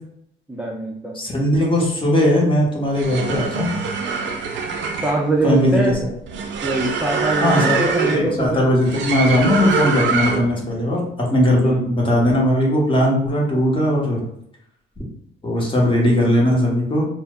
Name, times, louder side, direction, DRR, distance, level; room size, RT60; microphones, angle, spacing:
voice 1, 0.5-1.2 5.0-6.0 6.6-8.6 11.6-11.8, right 2 dB, 5° right, -4 dB, 0.4 m, -23 dB
voice 2, 1.1-3.7 5.4-6.0 7.4-14.2 15.4-17.1, left 1 dB, 25° left, -2 dB, 0.9 m, -18 dB
sound 1, 2.8-10.6, right 5 dB, 70° right, 0.5 m, -24 dB
2.1 x 2.0 x 3.5 m, 0.74 s
cardioid pair, 90°, 20 cm